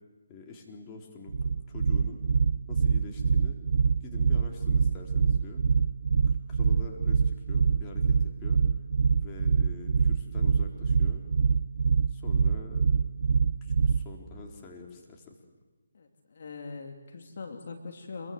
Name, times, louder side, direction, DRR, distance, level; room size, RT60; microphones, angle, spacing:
voice 1, 0.3-2.2 2.7-3.6 4.0-5.7 6.3-8.6 9.2-11.2 12.1-12.9 13.6-15.4, left 3 dB, 20° left, 0 dB, 4.0 m, -46 dB
sound 1, 1.3-14.2, right 5 dB, 65° right, 0.9 m, -24 dB
voice 2, 15.9-18.3, left 4 dB, 55° left, 4 dB, 2.9 m, -42 dB
27.5 x 22.5 x 7.9 m, 1.2 s
figure-of-eight pair, 150°, 0 cm